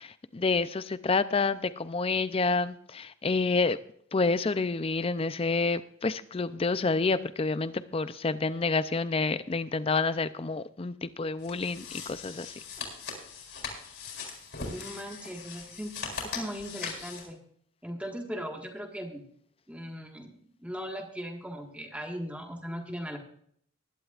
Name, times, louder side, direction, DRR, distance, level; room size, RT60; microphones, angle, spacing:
voice 1, 0.0-3.8 4.1-12.5, left 4 dB, 25° left, 14 dB, 0.4 m, -28 dB
sound 1, 11.4-17.3, left 5 dB, 60° left, 4.3 m, -40 dB
voice 2, 14.7-17.4 17.8-19.2 19.7-20.3 20.6-23.2, equal, 5° right, 3 dB, 1.6 m, -38 dB
20.0 x 11.5 x 2.4 m, 0.65 s
head